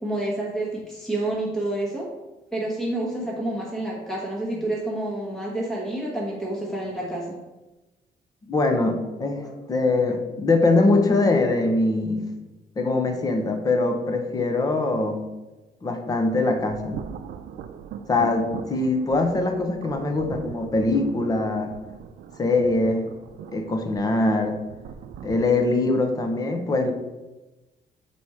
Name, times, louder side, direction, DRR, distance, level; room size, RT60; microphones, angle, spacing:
voice 1, 0.0-2.1 2.5-7.4 9.4-9.5, right 1 dB, 5° left, -4 dB, 1.1 m, -29 dB
voice 2, 8.5-12.3 12.8-15.3 15.8-17.0 18.1-21.8 22.4-23.1 23.5-24.6 25.2-26.9, left 2 dB, 25° left, 6 dB, 0.7 m, -22 dB
sound 1, 16.5-25.4, right 9 dB, 75° right, 0.5 m, -40 dB
6.1 x 4.2 x 4.8 m, 1.1 s
cardioid pair, 170°, 16 cm